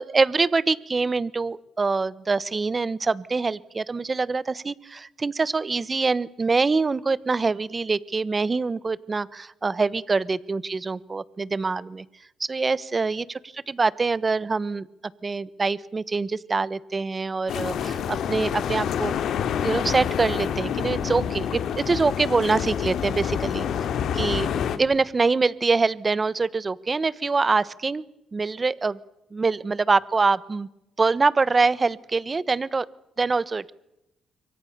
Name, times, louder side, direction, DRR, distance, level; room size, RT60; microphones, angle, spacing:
voice 1, 0.0-12.0 12.4-14.9 15.2-19.1 19.6-23.9 24.1-24.5 24.8-28.0 28.3-29.0 29.3-30.7 31.0-32.9 33.2-33.7, right 4 dB, 30° right, 19 dB, 1.1 m, -24 dB
ocean waves surround me, 17.5-24.8, left 8 dB, 70° left, 2.5 m, -27 dB
27.0 x 24.0 x 6.8 m, 0.88 s
cardioid pair, 90°, 0 cm